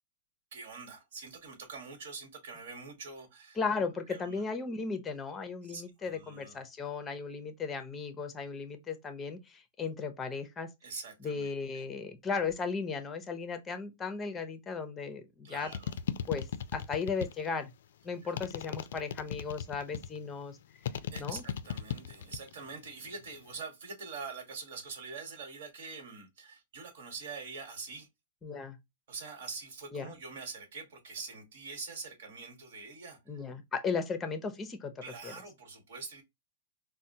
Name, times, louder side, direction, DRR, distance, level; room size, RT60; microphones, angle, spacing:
voice 1, 0.5-3.6 4.1-4.4 5.7-6.6 10.8-11.9 15.4-16.0 18.2-18.3 21.1-28.1 29.1-33.4 35.0-36.2, right 4 dB, 65° right, 1.3 m, -45 dB
voice 2, 3.6-10.7 11.2-15.7 16.3-16.5 16.7-17.7 18.0-20.6 21.2-21.4 28.4-28.8 29.9-30.1 33.3-34.9 35.2-35.3, left 5 dB, 15° left, 0.5 m, -36 dB
sound 1, 15.7-17.6 18.4-20.2 20.8-22.5 22.8-23.4, left 9 dB, 70° left, 0.3 m, -36 dB
4.1 x 2.1 x 2.7 m
hypercardioid pair, 150°, 0 cm